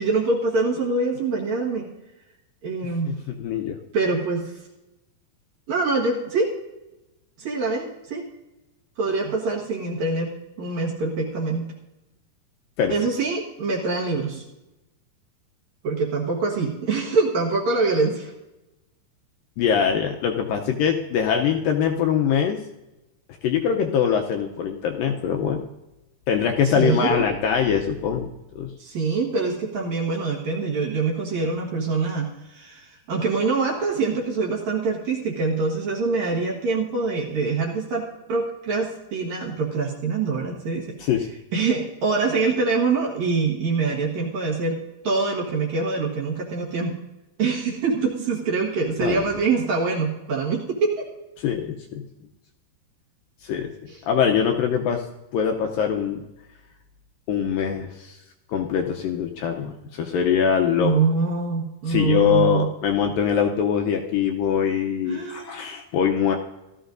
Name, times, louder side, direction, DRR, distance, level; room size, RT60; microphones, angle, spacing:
voice 1, 0.0-1.9 2.6-3.1 3.9-4.5 5.7-6.5 7.4-8.2 9.0-10.3 10.6-11.6 12.9-14.4 15.8-18.3 26.6-27.2 28.8-40.9 41.5-44.8 45.0-47.0 47.4-51.1 53.9-54.0 60.8-62.7 65.1-65.6, right 4 dB, 55° right, -2 dB, 2.3 m, -24 dB
voice 2, 2.8-3.8 12.8-12.9 19.6-22.6 23.4-25.6 26.3-28.3 28.6-28.7 41.0-41.3 49.0-49.2 51.4-52.0 53.4-53.7 54.1-55.1 55.3-56.2 57.3-58.2 58.5-60.9 61.9-66.4, left 8 dB, 75° left, 3 dB, 2.1 m, -23 dB
16.5 x 13.5 x 2.6 m, 0.99 s
omnidirectional pair, 4.6 m